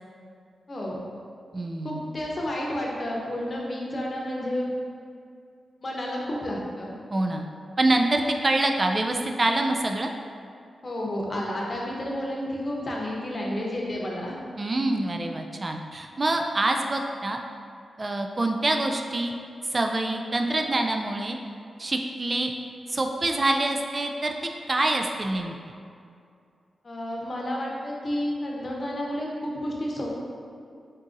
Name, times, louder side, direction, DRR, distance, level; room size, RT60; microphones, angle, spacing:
voice 1, 0.7-1.0 1.8-4.7 5.8-6.9 10.8-14.3 26.8-30.1, left 1 dB, 45° left, -3 dB, 0.8 m, -31 dB
voice 2, 1.5-2.1 7.1-7.4 7.8-10.1 14.6-17.4 18.0-19.3 19.7-21.4 21.8-22.5 22.9-24.4 24.7-25.5, right 2 dB, 40° right, 3 dB, 0.3 m, -25 dB
4.0 x 3.6 x 2.6 m, 2.4 s
cardioid pair, 55°, 0 cm